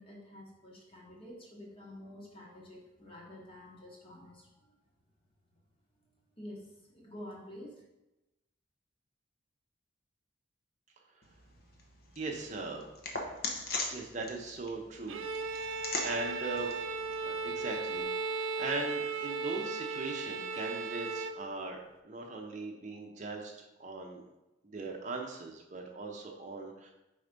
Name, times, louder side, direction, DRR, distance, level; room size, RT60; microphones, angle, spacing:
voice 1, 0.0-4.7 6.4-7.8, left 1 dB, 25° left, -2 dB, 1.2 m, -49 dB
sound 1, 11.2-18.0, left 3 dB, 50° left, 0.9 m, -42 dB
voice 2, 12.2-12.9 13.9-15.2 15.5-16.7 17.2-24.2 24.6-26.9, right 3 dB, 35° right, 1 dB, 0.7 m, -40 dB
Bowed string instrument, 15.1-21.4, right 4 dB, 75° right, 0.4 m, -36 dB
4.7 x 4.2 x 5.1 m, 0.97 s
head